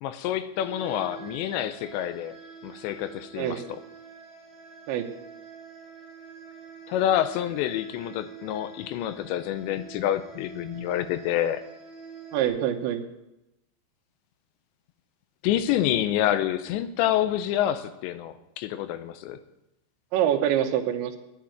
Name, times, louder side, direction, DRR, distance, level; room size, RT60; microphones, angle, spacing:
voice 1, 0.0-2.4 2.6-3.8 6.9-11.6 15.4-19.4, left 11 dB, 80° left, 11 dB, 2.8 m, -27 dB
sound 1, 0.5-12.5, right 5 dB, 25° left, 5.0 m, -46 dB
voice 2, 12.3-13.0 20.1-21.2, right 10 dB, 80° right, 3 dB, 3.3 m, -25 dB
10.0 x 8.7 x 9.0 m, 0.89 s
omnidirectional pair, 5.4 m